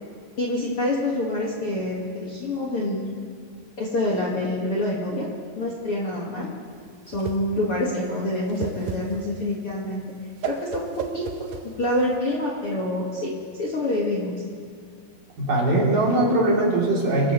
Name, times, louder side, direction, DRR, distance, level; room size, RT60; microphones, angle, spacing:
voice 1, 0.4-3.1 3.8-5.3 5.5-6.5 7.1-10.0 10.4-11.3 11.8-13.3 13.6-14.3, left 1 dB, 60° left, -4 dB, 1.4 m, -26 dB
Whoosh swoosh swish, 6.7-12.2, right 6 dB, 75° right, 2.1 m, -35 dB
voice 2, 15.4-17.3, right 2 dB, 50° right, -4 dB, 4.3 m, -21 dB
25.0 x 14.0 x 3.1 m, 2.2 s
omnidirectional pair, 5.1 m